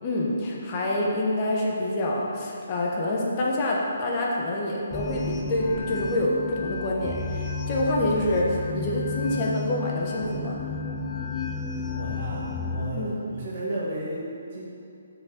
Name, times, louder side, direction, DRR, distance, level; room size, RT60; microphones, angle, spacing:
voice 1, 0.0-10.6 12.9-13.1, left 1 dB, 25° left, -3 dB, 1.0 m, -27 dB
sound 1, 4.9-12.9, left 4 dB, 10° left, 0.5 m, -32 dB
voice 2, 11.9-14.7, right 1 dB, 35° right, -6 dB, 1.5 m, -34 dB
6.2 x 5.0 x 6.7 m, 2.6 s
hypercardioid pair, 170°, 0 cm